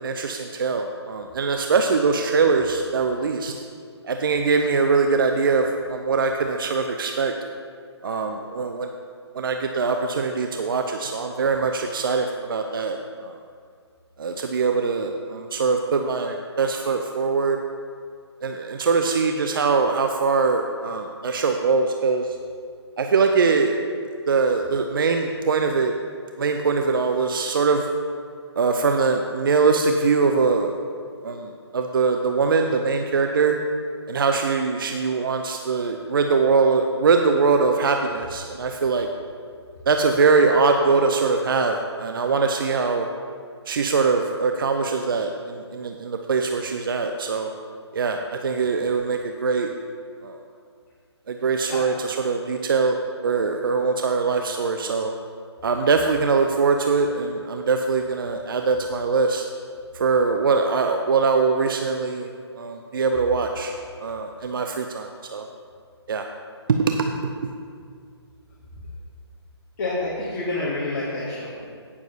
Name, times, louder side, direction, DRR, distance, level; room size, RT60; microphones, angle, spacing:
voice 1, 0.0-3.5 4.1-7.3 8.0-8.9 9.3-13.0 13.2-13.4 14.2-17.6 18.4-22.3 23.0-23.7 24.3-25.9 26.4-27.9 28.6-30.7 31.2-33.6 34.1-39.1 39.9-43.1 43.7-47.5 47.9-49.7 50.2-50.4 51.3-53.0 53.2-55.1 55.6-59.4 59.9-62.3 62.6-63.7 64.0-65.5 66.1-66.3 66.7-67.3, right 4 dB, 50° right, 4 dB, 0.6 m, -22 dB
voice 2, 69.8-71.7, left 2 dB, 40° left, -6 dB, 1.9 m, -28 dB
16.5 x 7.1 x 2.8 m, 2.1 s
figure-of-eight pair, 140°, 15 cm